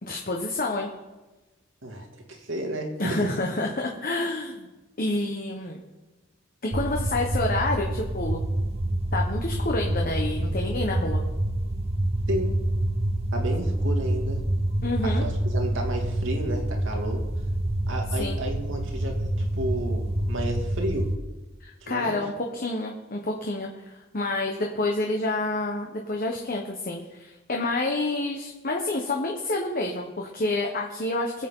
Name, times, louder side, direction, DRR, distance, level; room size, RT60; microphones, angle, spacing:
voice 1, 0.0-0.9 3.0-4.7 5.0-5.8 6.6-8.4 9.1-11.2 14.8-15.3 18.1-18.4 21.6-31.5, left 2 dB, 50° left, 1 dB, 1.2 m, -28 dB
voice 2, 1.8-3.3 12.3-12.5 13.3-14.4 15.0-17.2 17.9-21.1 21.8-22.2, right 1 dB, 85° right, 1 dB, 2.5 m, -32 dB
sound 1, 6.7-21.2, right 1 dB, 35° right, 0.8 m, -27 dB
24.0 x 8.2 x 3.8 m, 1.1 s
head